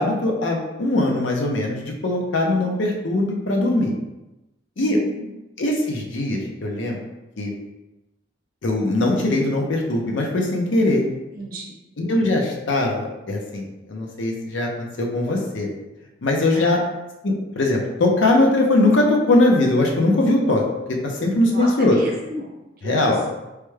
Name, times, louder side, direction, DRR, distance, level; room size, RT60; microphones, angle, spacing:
voice 1, 0.0-3.9 4.8-5.0 5.6-7.0 7.4-7.5 8.6-11.0 12.0-15.7 16.2-16.8 17.2-20.6 21.0-22.0 22.8-23.2, left 2 dB, 75° left, 0 dB, 0.6 m, -21 dB
voice 2, 4.8-5.3 11.3-11.7 16.5-16.8 21.4-22.5 22.8-23.3, right 1 dB, 50° right, -2 dB, 0.7 m, -34 dB
3.2 x 2.2 x 3.1 m, 1.0 s
head